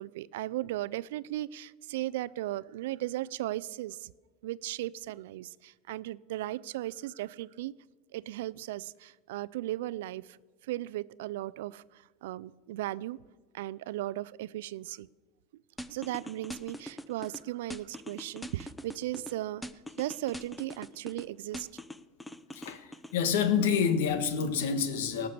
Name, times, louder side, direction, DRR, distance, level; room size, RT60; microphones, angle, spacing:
voice 1, 0.0-4.1 4.4-7.7 8.1-10.4 10.6-13.2 13.5-15.1 15.9-19.6 20.0-21.7, right 15 dB, 85° right, 20 dB, 0.4 m, -36 dB
sound 1, 15.8-17.4 17.7-19.3 19.6-21.2 21.5-23.1, equal, 5° left, 0.7 m, -42 dB
voice 2, 22.5-25.3, left 7 dB, 85° left, 10 dB, 1.4 m, -28 dB
17.5 x 6.6 x 6.8 m, 1.3 s
supercardioid pair, 110°, 0 cm